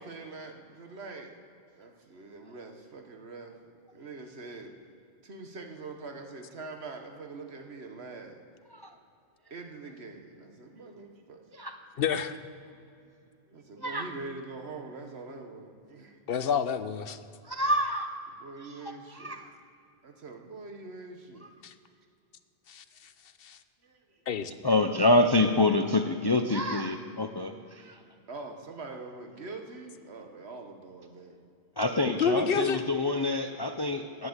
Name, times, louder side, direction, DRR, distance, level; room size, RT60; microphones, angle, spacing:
voice 1, 0.0-1.3 1.8-4.7 5.2-8.4 9.5-11.4 13.5-16.2 18.4-19.4 20.0-21.5 23.8-24.2 28.3-31.4, right 3 dB, 75° right, 4 dB, 1.5 m, -44 dB
voice 2, 12.0-12.4 16.3-17.2 21.6-21.7 22.7-22.8 23.4-23.6 24.3-24.5 32.2-32.8, left 6 dB, 65° left, 12 dB, 0.9 m, -28 dB
voice 3, 17.4-18.1 18.6-18.7 19.1-19.5 24.6-28.0 31.8-34.3, left 2 dB, 30° left, 6 dB, 0.5 m, -26 dB
11.0 x 11.0 x 8.0 m, 2.5 s
omnidirectional pair, 1.1 m